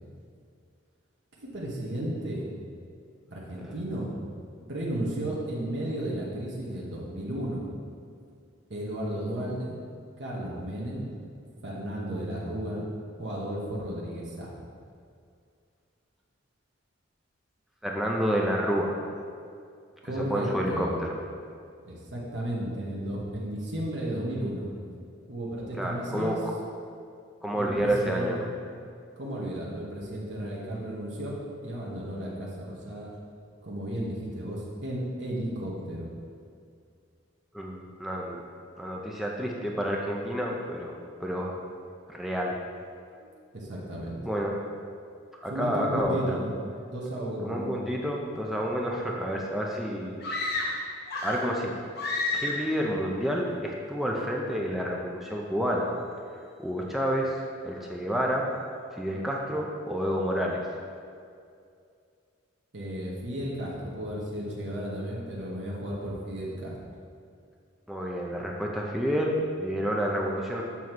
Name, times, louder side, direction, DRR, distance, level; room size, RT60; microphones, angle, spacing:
voice 1, 1.4-2.5 3.3-4.1 4.6-7.6 8.7-9.7 10.2-11.1 11.6-12.8 13.2-14.5 20.0-21.0 21.8-24.7 25.3-26.4 27.5-28.4 29.2-31.3 31.6-33.1 33.6-36.1 43.2-43.3 43.5-44.2 45.5-46.5 46.8-47.8 62.7-66.7, right 1 dB, 65° right, -4 dB, 1.1 m, -33 dB
voice 2, 17.8-18.9 20.2-20.9 25.8-26.4 27.4-28.5 37.5-38.4 38.8-40.9 41.2-41.6 42.1-42.5 44.2-44.6 45.4-46.4 47.4-50.2 50.6-50.8 51.2-51.7 52.3-55.9 56.6-58.5 58.9-60.7 67.9-70.6, equal, ahead, -2 dB, 0.5 m, -29 dB
sound 1, 50.2-51.6 52.0-52.8, left 2 dB, 55° left, 0.9 m, -30 dB
7.2 x 3.1 x 5.9 m, 2.3 s
head